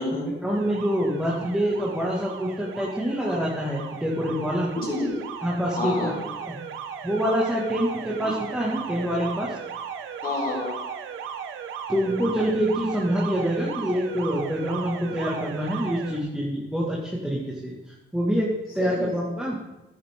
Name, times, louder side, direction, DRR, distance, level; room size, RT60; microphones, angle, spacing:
voice 1, 0.4-4.7 5.4-6.1 6.5-6.6 7.0-9.6 11.9-19.6, equal, 5° right, -4 dB, 2.0 m, -26 dB
Alarm, 0.5-16.2, right 7 dB, 85° right, 1.0 m, -37 dB
voice 2, 4.7-5.2 5.8-6.1 8.1-8.4 10.2-10.8 18.8-19.1, left 2 dB, 45° left, -3 dB, 4.2 m, -29 dB
10.5 x 9.5 x 3.7 m, 1.0 s
cardioid pair, 90°, 20 cm